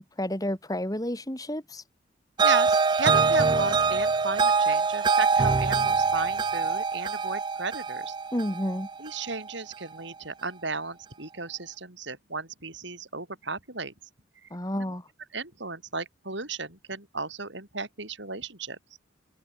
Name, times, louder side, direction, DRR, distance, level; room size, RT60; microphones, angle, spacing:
voice 1, 0.0-1.8 8.3-8.9 14.5-15.1, equal, 20° left, 3.5 m, -31 dB
sound 1, 2.4-9.5, right 4 dB, 20° right, 0.3 m, -24 dB
voice 2, 2.4-8.2 9.0-13.9 14.4-14.5 14.8-14.9 15.3-18.8, right 4 dB, 65° right, 5.5 m, -35 dB
head